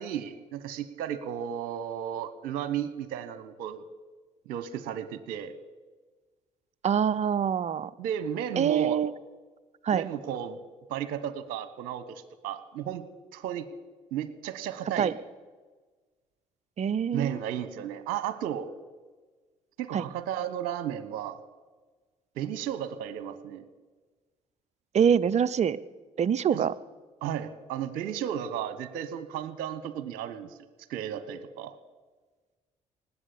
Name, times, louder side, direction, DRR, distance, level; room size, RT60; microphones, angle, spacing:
voice 1, 0.0-3.8 4.5-5.5 8.0-9.0 9.9-10.6 10.9-13.0 13.3-13.7 14.1-15.1 17.1-18.7 19.8-21.4 22.4-23.6 26.5-26.6 27.2-30.5 30.9-31.8, right 9 dB, 70° right, 13 dB, 1.2 m, -34 dB
voice 2, 6.8-7.9 8.6-9.1 9.8-10.0 15.0-15.1 16.8-17.4 19.9-20.0 24.9-25.8 26.2-26.7, right 8 dB, 45° right, 18 dB, 0.7 m, -24 dB
19.0 x 8.4 x 8.5 m, 1.3 s
hypercardioid pair, 55°, 16 cm